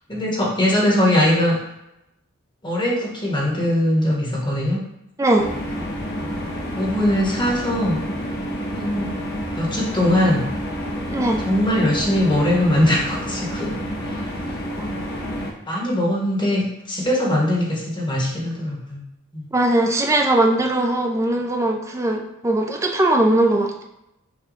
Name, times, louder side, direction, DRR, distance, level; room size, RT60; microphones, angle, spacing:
voice 1, 0.1-1.6 2.6-4.8 6.2-6.3 6.7-8.0 8.7-9.1 9.6-10.4 11.4-13.7 14.0-14.3 15.7-19.0 19.3-19.5, left 1 dB, 20° left, -4 dB, 1.1 m, -21 dB
sound 1, 5.4-15.5, equal, 50° left, 0.7 m, -29 dB
voice 2, 11.1-11.5 14.8-14.9 19.5-23.8, right 1 dB, 15° right, 2 dB, 0.4 m, -20 dB
6.1 x 2.2 x 3.8 m, 0.87 s
head